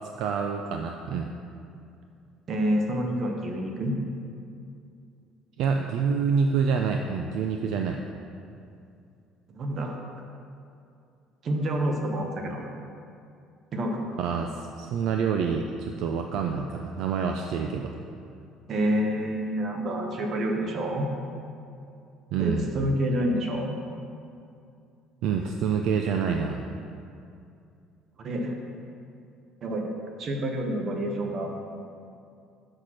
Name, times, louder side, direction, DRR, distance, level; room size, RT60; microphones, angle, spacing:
voice 1, 0.2-1.3 5.6-8.0 14.2-17.9 22.3-22.7 25.2-26.6, right 6 dB, 70° right, 3 dB, 0.4 m, -27 dB
voice 2, 2.5-4.0 9.5-10.0 11.4-12.6 13.7-14.1 18.7-21.1 22.4-23.8 28.2-28.6 29.6-29.9 30.2-31.5, right 1 dB, 50° right, 2 dB, 1.0 m, -28 dB
6.5 x 4.2 x 6.2 m, 2.5 s
cardioid pair, 110°, 0 cm